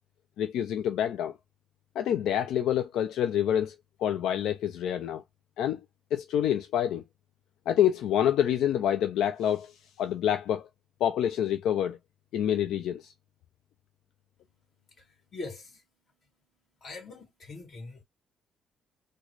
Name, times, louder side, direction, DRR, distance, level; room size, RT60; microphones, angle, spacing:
voice 1, 0.4-1.3 2.0-5.2 5.6-5.8 6.1-7.0 7.7-10.7 11.0-12.0 12.3-13.1, left 10 dB, 85° left, 0.4 m, -27 dB
voice 2, 14.8-16.5 16.8-18.0, left 3 dB, 50° left, 2.0 m, -44 dB
3.6 x 2.2 x 3.1 m
cardioid pair, 90°, 0 cm